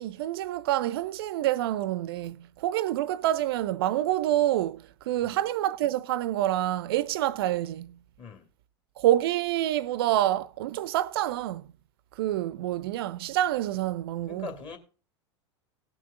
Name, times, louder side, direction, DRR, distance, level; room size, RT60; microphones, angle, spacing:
voice 1, 0.0-8.0 9.0-11.7 12.2-14.5, right 13 dB, 55° right, 0.4 m, -27 dB
voice 2, 8.2-8.5 14.3-14.8, left 5 dB, 35° left, 2.4 m, -41 dB
17.5 x 6.0 x 3.8 m
figure-of-eight pair, 85°, 15 cm